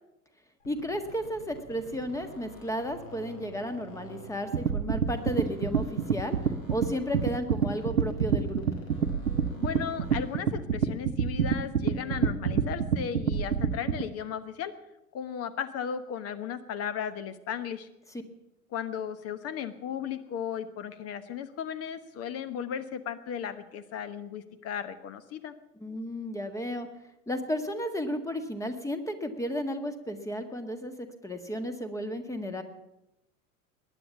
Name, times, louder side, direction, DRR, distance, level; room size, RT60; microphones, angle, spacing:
sound 1, 0.6-4.8 5.1-10.5, equal, 60° left, 5.5 m, -49 dB
voice 1, 0.6-6.4 6.7-8.7 25.8-26.9 27.3-32.6, equal, 5° left, 9 dB, 1.7 m, -33 dB
sound 2, 4.5-14.0, right 7 dB, 80° right, 0.9 m, -27 dB
voice 2, 9.6-14.7 15.1-17.9 18.7-25.5, left 8 dB, 35° left, 12 dB, 1.1 m, -36 dB
20.0 x 10.0 x 7.2 m, 0.91 s
figure-of-eight pair, 80°, 44 cm